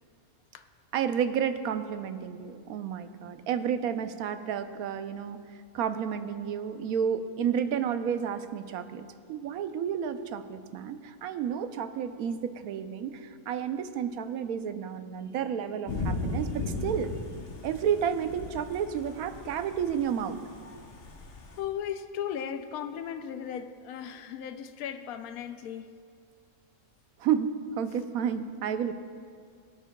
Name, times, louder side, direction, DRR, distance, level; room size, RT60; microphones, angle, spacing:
voice 1, 0.9-5.4 5.7-17.1 17.6-20.4 27.2-27.5 27.8-28.9, right 8 dB, 80° right, 1.1 m, -31 dB
Thunder / Rain, 15.9-21.6, left 2 dB, 45° left, 1.0 m, -37 dB
voice 2, 21.6-25.9, left 9 dB, 80° left, 1.0 m, -36 dB
23.5 x 8.3 x 2.2 m
omnidirectional pair, 1.5 m